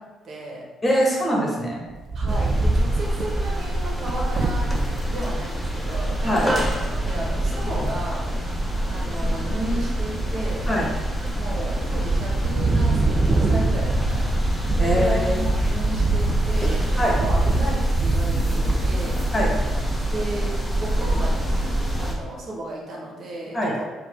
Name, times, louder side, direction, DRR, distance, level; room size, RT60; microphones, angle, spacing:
voice 1, 0.2-0.6 2.1-4.7 5.0-8.2 8.9-10.7 11.4-19.2 20.1-20.5 20.8-21.5 22.0-23.9, right 1 dB, 55° right, -2 dB, 1.3 m, -33 dB
voice 2, 0.8-1.8 6.2-6.5 10.7-10.9 14.8-15.4 17.0-17.2 19.3-19.5 23.5-23.8, equal, 20° left, -3 dB, 1.5 m, -22 dB
Wind, 1.9-5.0 5.5-5.6 5.8-6.2 7.7-8.3 8.8-9.3 9.6-10.8 11.2-11.7 12.0-20.2, right 3 dB, 40° right, 0.5 m, -25 dB
sound 1, 2.3-22.1, right 1 dB, ahead, 1.0 m, -25 dB
4.5 x 2.5 x 3.7 m, 1.2 s
supercardioid pair, 60°, 0 cm